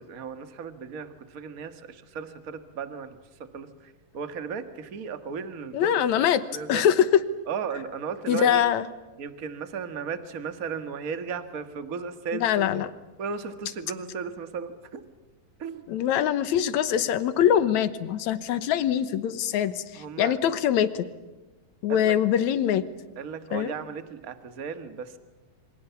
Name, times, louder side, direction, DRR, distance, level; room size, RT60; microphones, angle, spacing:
voice 1, 0.0-6.0 6.3-6.9 7.5-8.6 9.2-12.7 13.2-15.0 15.6-15.8 19.9-20.3 21.9-22.2 23.2-25.2, right 6 dB, 40° right, 10 dB, 1.2 m, -35 dB
voice 2, 5.7-6.4 6.7-7.2 8.3-8.9 12.3-12.9 15.9-21.1 21.8-22.9 23.5-23.8, left 10 dB, 65° left, 13 dB, 2.2 m, -23 dB
27.5 x 24.5 x 7.1 m, 1.1 s
omnidirectional pair, 3.9 m